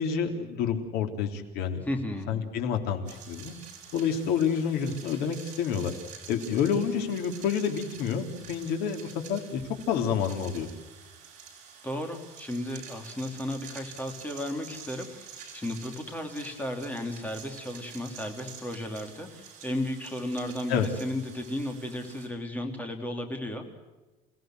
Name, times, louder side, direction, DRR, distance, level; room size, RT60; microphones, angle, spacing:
voice 1, 0.0-1.8 2.3-3.5 3.9-5.9 6.3-9.6 9.9-10.7 20.7-20.9, left 7 dB, 70° left, 5 dB, 3.5 m, -28 dB
voice 2, 1.8-2.3 11.8-23.8, left 1 dB, 10° left, 4 dB, 3.2 m, -34 dB
sound 1, 3.1-22.3, right 7 dB, 45° right, 6.9 m, -48 dB
28.5 x 17.5 x 7.8 m, 1.1 s
cardioid pair, 165°, 17 cm